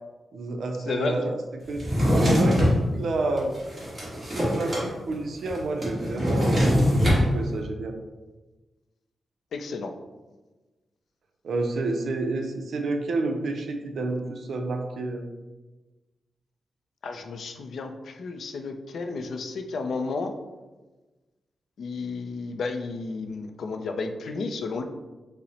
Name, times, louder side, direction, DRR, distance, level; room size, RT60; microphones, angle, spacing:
voice 1, 0.3-3.5 4.3-8.0 11.4-15.2, right 2 dB, 60° right, 4 dB, 0.5 m, -30 dB
voice 2, 0.9-1.2 9.5-9.9 17.0-20.3 21.8-24.8, left 4 dB, 60° left, 6 dB, 0.4 m, -32 dB
Drawer open or close, 1.7-2.8 3.4-4.9 5.1-5.2 5.4-7.2, equal, 20° right, 1.5 m, -22 dB
5.5 x 2.1 x 4.1 m, 1.2 s
wide cardioid pair, 180°, 0 cm